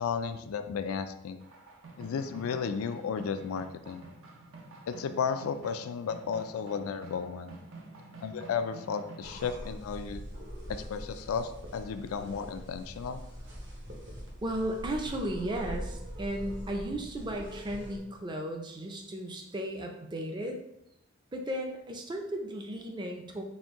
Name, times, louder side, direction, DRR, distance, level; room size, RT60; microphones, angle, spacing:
voice 1, 0.0-1.4 2.0-4.0 4.9-7.6 8.2-10.2 10.7-13.2, left 6 dB, 85° left, 10 dB, 0.3 m, -34 dB
sound 1, 1.4-9.6, right 2 dB, 75° right, 0.7 m, -50 dB
sound 2, 9.2-18.0, equal, 55° right, 1.1 m, -42 dB
voice 2, 14.4-20.6 21.3-23.4, right 1 dB, 20° right, 3 dB, 0.4 m, -35 dB
4.2 x 2.6 x 3.6 m, 0.83 s
head